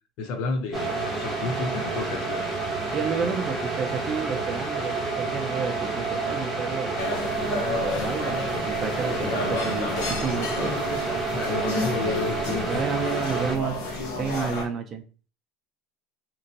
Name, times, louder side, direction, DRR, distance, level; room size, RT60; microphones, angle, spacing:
voice 1, 0.2-2.5 11.3-12.8, left 3 dB, 55° left, 0.6 m, -31 dB
sound 1, 0.7-13.6, right 3 dB, 10° right, 1.0 m, -29 dB
voice 2, 2.9-7.0 7.4-10.7 12.7-13.9 14.2-15.1, right 6 dB, 25° right, 0.4 m, -31 dB
Barcelona restaurant ambience small bar, 7.0-14.6, left 2 dB, 80° left, 0.9 m, -31 dB
3.0 x 2.7 x 2.6 m
cardioid pair, 155°, 0 cm